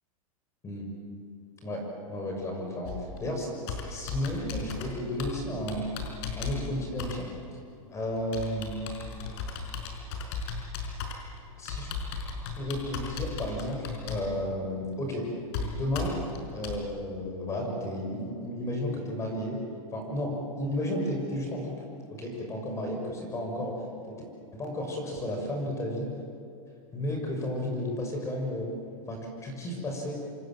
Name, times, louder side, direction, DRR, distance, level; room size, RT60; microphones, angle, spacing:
voice 1, 1.6-2.9 3.2-5.9 6.4-7.3 7.9-8.8 11.6-11.9 12.5-15.3 15.6-16.1 16.5-19.6 19.9-21.8 22.1-23.7 24.0-24.2 24.5-26.1 26.9-28.7 29.1-30.2, left 1 dB, 15° left, 2 dB, 6.5 m, -33 dB
Computer keyboard, 2.8-16.8, left 5 dB, 45° left, 5.3 m, -37 dB
27.5 x 27.0 x 7.7 m, 2.6 s
supercardioid pair, 155°, 18 cm